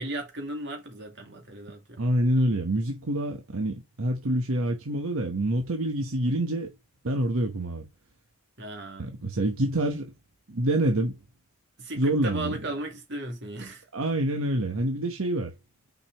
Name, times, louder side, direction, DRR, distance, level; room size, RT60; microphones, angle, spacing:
voice 1, 0.0-2.1 8.6-9.1 11.8-13.8, right 1 dB, 55° right, 2.3 m, -36 dB
voice 2, 2.0-6.7 7.0-7.9 9.0-10.1 10.5-11.2 12.0-12.6 13.9-15.5, right 1 dB, 75° right, 1.1 m, -26 dB
5.9 x 5.1 x 3.4 m
head